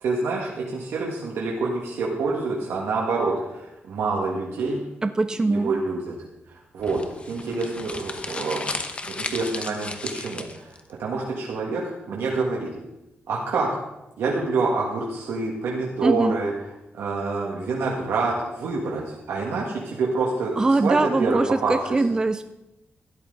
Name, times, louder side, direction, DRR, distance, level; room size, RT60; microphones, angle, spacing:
voice 1, 0.0-4.9 5.4-6.2 6.7-8.7 9.1-10.7 11.0-11.8 12.1-12.7 13.3-13.8 14.2-16.5 16.9-21.7, right 3 dB, 90° right, -3 dB, 1.8 m, -27 dB
voice 2, 5.0-5.7 16.0-16.4 20.6-22.5, right 2 dB, 20° right, 11 dB, 0.4 m, -22 dB
sound 1, 6.8-10.8, left 3 dB, 30° left, 0.9 m, -34 dB
13.0 x 10.5 x 3.9 m, 0.93 s
wide cardioid pair, 125°, 4 cm